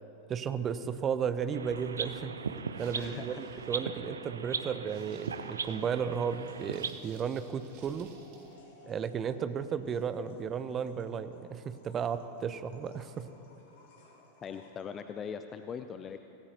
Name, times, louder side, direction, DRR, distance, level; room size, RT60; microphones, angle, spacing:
voice 1, 0.3-2.4 2.8-8.1 8.8-13.3, right 7 dB, 25° right, 12 dB, 0.8 m, -34 dB
sound 1, 1.5-6.9, right 5 dB, 70° right, 0.6 m, -38 dB
sound 2, 1.7-3.7 4.0-4.1 5.8-14.9, left 3 dB, 50° left, 3.3 m, -61 dB
sound 3, 2.6-8.6, right 6 dB, 45° right, 2.1 m, -59 dB
voice 2, 2.9-3.6 14.4-16.2, left 7 dB, 25° left, 9 dB, 0.6 m, -41 dB
25.5 x 17.5 x 3.0 m, 2.9 s
figure-of-eight pair, 90°, 0 cm